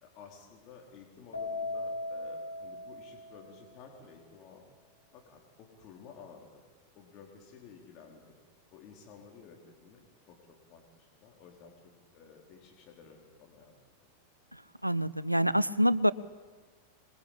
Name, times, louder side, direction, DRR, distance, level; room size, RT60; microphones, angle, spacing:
voice 1, 0.0-4.6 5.1-6.6 6.9-8.3 8.7-10.0 10.3-13.7 14.0-14.1, left 6 dB, 40° left, 0 dB, 4.5 m, -53 dB
Keyboard (musical), 1.3-3.8, left 2 dB, 75° left, 3.8 m, -38 dB
voice 2, 14.8-16.1, equal, 90° right, 19 dB, 0.8 m, -26 dB
27.5 x 22.0 x 8.8 m, 1.4 s
figure-of-eight pair, 90°, 0 cm